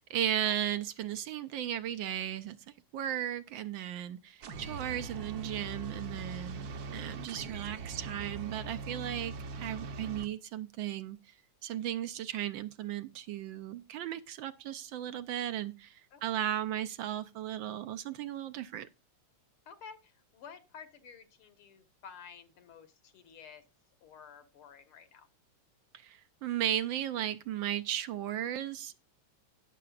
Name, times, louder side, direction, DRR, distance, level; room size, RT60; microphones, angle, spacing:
voice 1, 0.0-2.6 2.9-9.3 9.6-11.2 11.6-18.9 25.9-29.0, right 11 dB, 75° right, 1.3 m, -35 dB
sound 1, 4.4-10.3, right 4 dB, 55° right, 1.2 m, -41 dB
voice 2, 16.1-16.4 19.7-23.6 24.0-25.3, left 6 dB, 75° left, 2.4 m, -52 dB
18.5 x 6.7 x 2.4 m
omnidirectional pair, 2.4 m